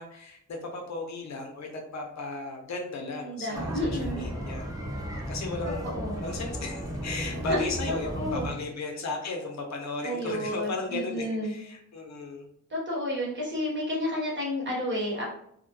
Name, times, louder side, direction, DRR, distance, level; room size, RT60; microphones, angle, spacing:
voice 1, 0.0-4.7 5.1-5.9 6.1-12.5, left 3 dB, 65° left, 2 dB, 0.6 m, -35 dB
voice 2, 3.2-4.2 5.8-6.2 7.4-7.7 8.2-8.4 10.0-11.5 12.7-15.2, left 1 dB, 40° right, -5 dB, 1.1 m, -31 dB
sound 1, 3.5-8.5, right 1 dB, 10° right, 0.6 m, -34 dB
2.1 x 2.1 x 2.9 m, 0.70 s
wide cardioid pair, 100°, 30 cm